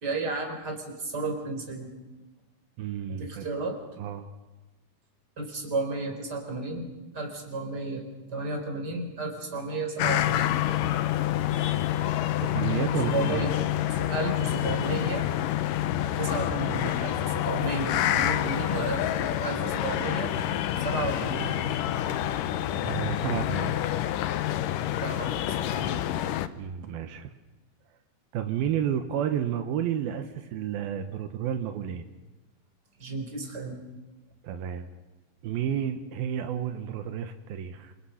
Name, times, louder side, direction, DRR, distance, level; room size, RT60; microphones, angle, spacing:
voice 1, 0.0-1.9 3.1-3.8 5.4-6.9 7.1-10.6 13.0-13.5 13.9-15.3 16.2-20.3 20.8-21.6 25.0-26.0 33.0-33.8, right 3 dB, 25° right, 3 dB, 4.8 m, -33 dB
voice 2, 2.8-3.5 4.0-4.3 12.4-13.5 22.8-23.8 26.6-27.3 28.3-32.0 34.4-34.9 35.4-37.9, right 9 dB, 80° right, 7 dB, 3.0 m, -31 dB
sound 1, 10.0-26.5, left 12 dB, 70° left, 2.4 m, -27 dB
28.5 x 27.5 x 5.8 m, 1.1 s
omnidirectional pair, 4.2 m